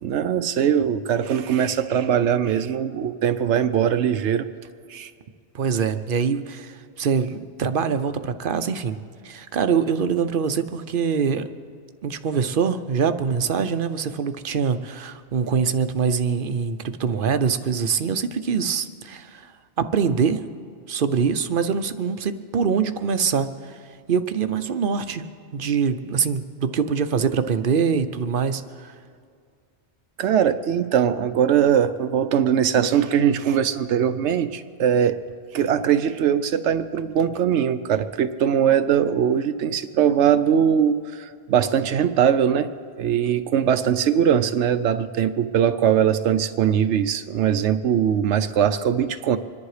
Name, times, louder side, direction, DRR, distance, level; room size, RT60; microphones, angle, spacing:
voice 1, 0.0-4.5 4.9-5.1 30.2-35.2 35.5-42.7 43.0-49.4, right 8 dB, 80° right, 10 dB, 0.9 m, -21 dB
voice 2, 5.5-9.0 9.2-11.5 12.0-19.5 19.8-20.4 20.9-23.7 24.1-25.2 25.5-28.9, right 6 dB, 55° right, 10 dB, 0.8 m, -24 dB
25.5 x 11.0 x 4.9 m, 2.2 s
omnidirectional pair, 1.2 m